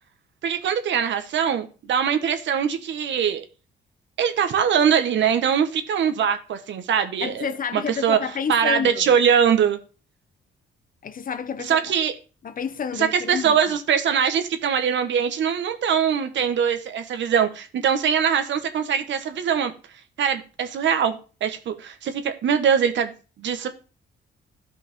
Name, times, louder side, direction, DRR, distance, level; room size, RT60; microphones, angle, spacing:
voice 1, 0.4-3.4 4.2-7.5 7.7-8.2 8.5-9.8 11.6-12.1 13.0-19.7 20.2-23.1 23.4-23.7, right 7 dB, 70° right, 1.4 m, -22 dB
voice 2, 7.2-9.1 11.0-11.8 12.4-13.6, left 7 dB, 45° left, 0.8 m, -29 dB
13.0 x 5.3 x 3.7 m
cardioid pair, 90°, 20 cm